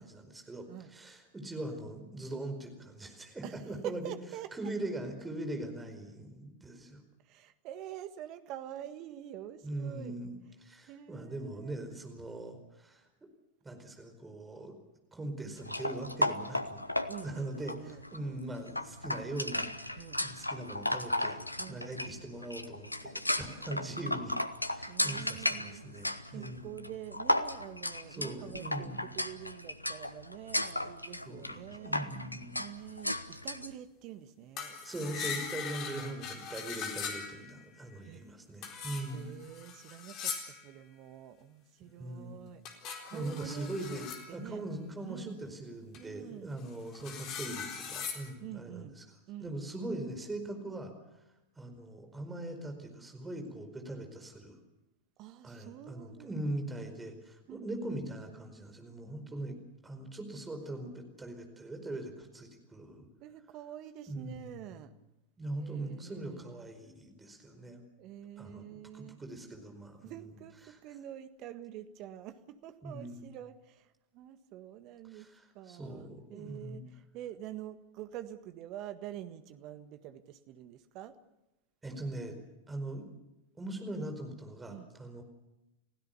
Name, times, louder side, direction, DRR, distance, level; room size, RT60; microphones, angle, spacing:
voice 1, 0.0-4.1 4.5-7.0 9.6-13.1 13.6-14.7 15.1-17.0 17.2-21.4 21.7-24.4 24.7-26.8 28.1-29.1 31.2-32.6 34.8-39.3 41.9-42.4 42.9-44.1 44.3-49.0 49.4-50.9 51.5-54.6 55.4-59.6 59.8-63.0 64.1-64.7 65.4-67.8 68.4-70.3 70.6-70.8 72.8-73.3 75.1-76.8 81.8-82.4 82.7-83.1 83.6-85.2, right 2 dB, 10° right, 5 dB, 4.8 m, -41 dB
voice 2, 3.4-4.7 7.2-10.1 10.9-11.8 17.1-18.4 19.9-20.2 21.6-21.9 23.9-24.4 24.9-25.8 26.3-32.1 32.6-35.3 38.0-38.2 38.7-38.8 39.1-45.4 45.9-46.5 48.4-49.0 49.3-49.6 55.2-56.3 57.5-57.7 63.2-64.9 65.6-66.7 68.0-69.2 70.0-75.3 75.5-81.1 84.7-84.9, right 11 dB, 40° right, 10 dB, 1.6 m, -47 dB
sound 1, 15.6-33.7, left 1 dB, 85° left, 1.0 m, -35 dB
sound 2, 34.6-37.6 38.6-40.7 42.6-44.3 45.9-46.0 46.6-48.3, left 6 dB, 35° left, 4.1 m, -40 dB
30.0 x 16.5 x 7.0 m, 0.96 s
figure-of-eight pair, 90°, 0 cm